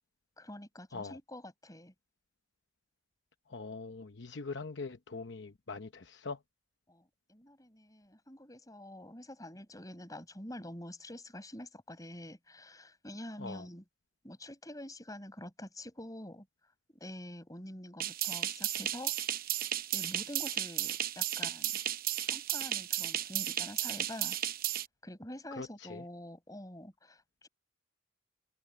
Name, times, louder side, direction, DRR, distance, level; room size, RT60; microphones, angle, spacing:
voice 1, 0.4-1.9 6.9-13.8 14.2-16.5 17.0-19.1 19.9-21.8 22.3-24.4 25.0-27.5, left 1 dB, 20° left, 6.7 m, -46 dB
voice 2, 3.5-6.4 13.4-13.7 25.5-26.0, left 4 dB, 65° left, 0.9 m, -42 dB
sound 1, 18.0-24.8, right 12 dB, 50° right, 0.7 m, -34 dB
head